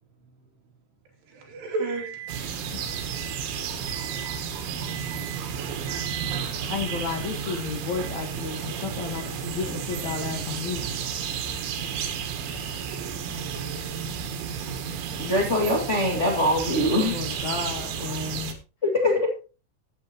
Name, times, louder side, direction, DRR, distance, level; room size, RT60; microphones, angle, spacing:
voice 1, 1.3-3.4 3.9-4.4 4.9-5.4 5.7-7.2 9.1-9.2 10.0-10.3, right 4 dB, 65° right, 1 dB, 4.7 m, -37 dB
sound 1, 2.3-18.5, right 7 dB, 85° right, 3.9 m, -32 dB
voice 2, 6.7-10.8 17.0-18.5, left 5 dB, 60° left, 3 dB, 2.0 m, -32 dB
voice 3, 15.2-17.1 18.8-19.3, left 1 dB, 40° left, -1 dB, 1.0 m, -23 dB
15.5 x 9.1 x 3.0 m, 0.32 s
omnidirectional pair, 5.2 m